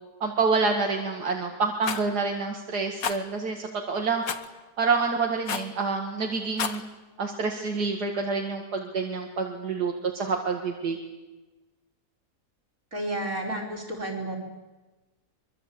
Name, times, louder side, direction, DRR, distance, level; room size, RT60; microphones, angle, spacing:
voice 1, 0.2-4.2 4.8-6.8 7.2-11.0, right 4 dB, 85° right, 2 dB, 2.6 m, -27 dB
Rattle, 1.8-2.1 3.0-3.2 4.3-4.5 5.5-5.7 6.4-6.8, left 6 dB, 65° left, 1.7 m, -30 dB
voice 2, 12.9-14.4, right 1 dB, 60° right, 3 dB, 5.4 m, -31 dB
24.5 x 23.0 x 8.6 m, 1.2 s
omnidirectional pair, 1.7 m